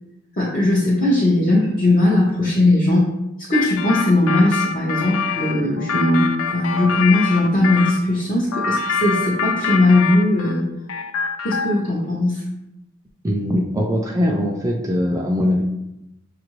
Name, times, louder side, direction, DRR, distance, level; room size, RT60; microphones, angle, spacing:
voice 1, 0.4-3.1 3.5-10.6 11.4-12.4, left 2 dB, 45° left, -7 dB, 0.8 m, -18 dB
sound 1, 3.5-8.0 8.5-10.6 10.9-11.9, left 5 dB, 75° left, 0.4 m, -25 dB
voice 2, 13.2-15.6, equal, 15° right, -1 dB, 0.3 m, -21 dB
6.5 x 2.5 x 3.0 m, 0.91 s
head